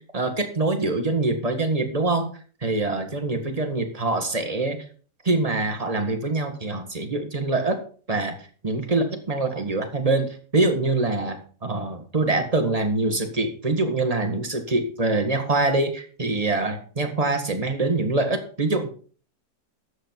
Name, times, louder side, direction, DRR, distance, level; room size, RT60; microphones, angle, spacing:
voice 1, 0.0-2.3 2.6-4.8 5.2-7.8 8.1-8.3 8.6-18.9, right 2 dB, 20° right, 5 dB, 1.6 m, -24 dB
12.5 x 8.1 x 4.6 m, 0.42 s
omnidirectional pair, 1.8 m